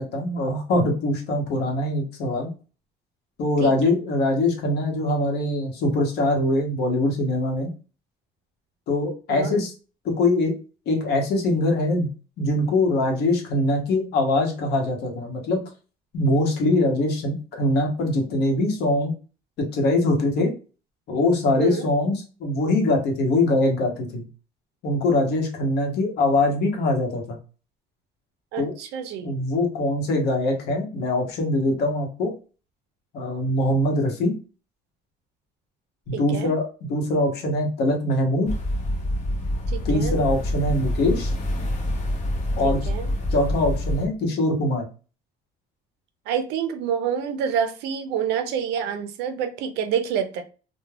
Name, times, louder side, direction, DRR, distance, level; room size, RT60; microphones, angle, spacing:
voice 1, 0.0-2.5 3.4-7.7 8.9-9.7 10.0-10.6 10.9-12.1 12.4-15.6 16.1-19.1 19.6-20.5 21.1-24.3 24.8-27.4 28.6-28.7 29.2-32.3 33.1-34.3 36.1-36.6 36.9-38.5 39.8-41.3 42.6-42.8 43.3-44.8, left 2 dB, 75° left, 0.9 m, -23 dB
voice 2, 21.6-21.9 28.5-29.3 36.1-36.5 39.7-40.1 42.6-43.1 46.3-50.4, right 8 dB, 85° right, 0.4 m, -27 dB
sound 1, 38.5-44.1, left 1 dB, 40° left, 0.8 m, -26 dB
2.2 x 2.1 x 3.2 m
cardioid pair, 110°, 17 cm